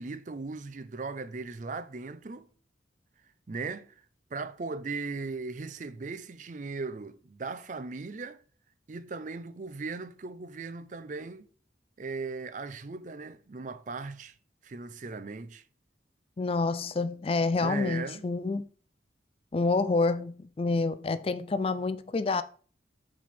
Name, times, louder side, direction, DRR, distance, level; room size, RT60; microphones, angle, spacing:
voice 1, 0.0-2.5 3.5-4.0 4.3-8.4 8.9-11.5 12.0-14.4 14.6-15.6 17.6-18.2, right 4 dB, 40° right, 0.5 m, -38 dB
voice 2, 16.4-18.7 19.5-22.4, left 3 dB, 30° left, 0.3 m, -28 dB
8.1 x 4.3 x 4.2 m
head